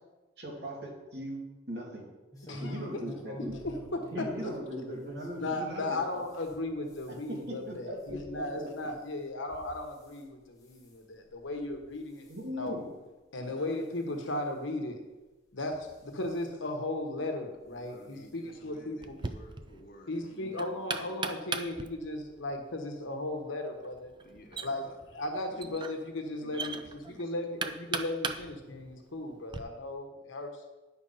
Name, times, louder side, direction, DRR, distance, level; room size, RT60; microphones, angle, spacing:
voice 1, 0.4-2.1 2.6-3.6 4.1-6.2 7.1-8.7 12.3-12.9, equal, 55° right, -3 dB, 2.5 m, -39 dB
sound 1, 2.3-5.7 6.1-10.2 10.6-11.0 11.5-11.9 12.1-12.4 13.1-13.2 13.5-13.6 14.7-14.8 15.6-16.4 17.6-17.8 18.1-18.2 18.5-18.6, equal, 20° left, 1.4 m, -47 dB
voice 2, 2.5-2.9 3.6-4.3 5.4-12.8 13.3-15.0 15.5-19.2 20.1-24.1 24.6-24.9 25.1-26.8 27.0-30.5, left 2 dB, 80° left, 4 dB, 1.2 m, -36 dB
voice 3, 17.7-21.6 24.2-25.0 25.5-25.8 26.4-27.7, left 1 dB, 50° left, 3 dB, 1.2 m, -54 dB
Knock, 19.0-29.6, right 4 dB, 25° right, 0.4 m, -40 dB
9.9 x 4.5 x 5.5 m, 1.1 s
head